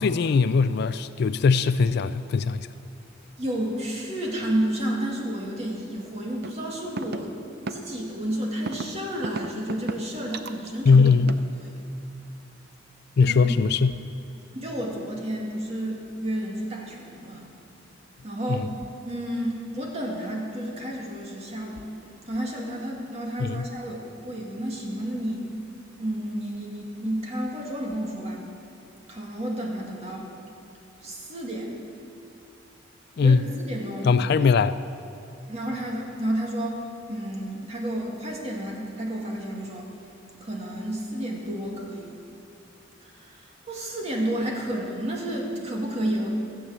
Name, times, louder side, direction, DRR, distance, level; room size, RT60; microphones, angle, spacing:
voice 1, 0.0-2.7 10.9-11.3 13.2-14.0 18.5-18.6 23.4-23.7 33.2-33.5 34.0-34.8, left 5 dB, 55° left, 13 dB, 0.3 m, -20 dB
voice 2, 3.4-7.3 7.7-11.0 11.6-11.7 13.2-13.5 14.5-17.5 18.2-18.7 19.0-21.9 22.3-25.5 26.0-28.4 29.1-30.2 31.0-31.7 33.1-34.1 35.5-36.8 37.1-39.9 40.4-42.1 43.0-46.3, right 1 dB, 35° right, -2 dB, 2.3 m, -31 dB
sound 1, 6.4-6.5 7.0-7.2 7.7-7.8 8.7-8.9 9.2-10.0 10.3-11.5, right 3 dB, 55° right, 0.6 m, -32 dB
15.0 x 8.1 x 7.4 m, 2.6 s
head